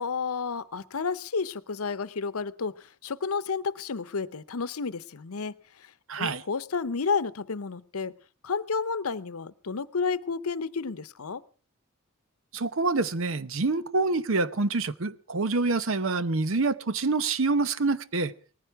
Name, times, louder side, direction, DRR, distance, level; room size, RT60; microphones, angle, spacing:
voice 1, 0.0-5.9 6.2-8.1 8.4-11.4, left 5 dB, 85° left, 16 dB, 0.8 m, -31 dB
voice 2, 6.1-6.4 12.5-18.3, right 3 dB, 65° right, 15 dB, 0.8 m, -26 dB
19.0 x 15.0 x 4.6 m, 0.37 s
head